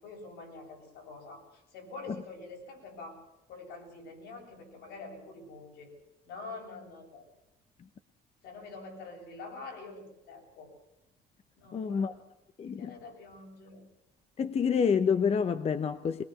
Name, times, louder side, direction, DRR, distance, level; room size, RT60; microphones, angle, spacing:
voice 1, 0.0-3.2 3.5-5.9 6.2-7.3 8.4-10.7 11.6-12.2 12.6-13.8, left 3 dB, 85° left, 7.9 m, -46 dB
voice 2, 11.7-12.1 12.6-12.9 14.4-16.2, left 6 dB, 35° left, 0.9 m, -28 dB
21.0 x 20.5 x 6.1 m
cardioid pair, 110°, 17 cm